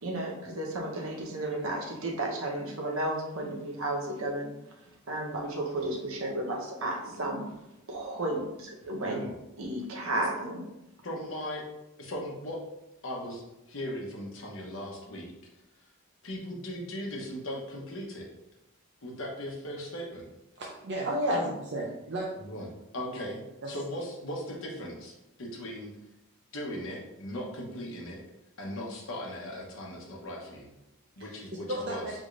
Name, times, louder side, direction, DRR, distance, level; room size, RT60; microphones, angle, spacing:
voice 1, 0.0-4.5 5.1-7.5 7.9-9.2 9.6-10.6 21.1-21.4, right 1 dB, 75° right, 0 dB, 0.9 m, -32 dB
voice 2, 11.0-11.6 12.0-12.6 13.0-13.4 13.7-15.3 16.2-18.3 19.0-20.3 22.4-22.7 22.9-25.9 26.5-28.2 28.6-30.7 31.2-32.0, equal, 65° left, -1 dB, 1.0 m, -38 dB
voice 3, 20.6-22.2 23.6-23.8 31.2-31.4 31.7-32.1, right 2 dB, 50° right, -3 dB, 0.5 m, -35 dB
4.9 x 3.6 x 2.5 m, 0.92 s
head